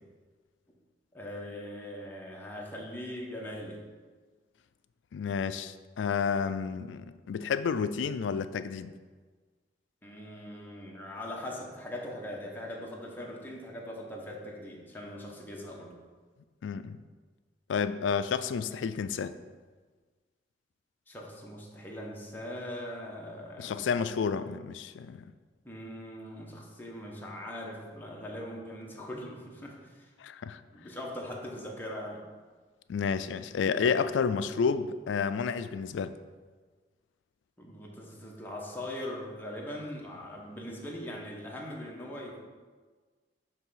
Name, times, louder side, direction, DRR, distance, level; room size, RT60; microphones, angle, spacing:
voice 1, 1.1-3.8 10.0-16.0 21.1-23.9 25.6-30.1 30.7-32.3 37.6-42.4, left 1 dB, 10° left, -2 dB, 1.0 m, -41 dB
voice 2, 5.1-8.9 16.6-17.0 17.7-19.3 23.6-25.3 30.2-30.6 32.9-36.1, left 6 dB, 90° left, 13 dB, 0.3 m, -30 dB
7.3 x 3.3 x 5.6 m, 1.4 s
head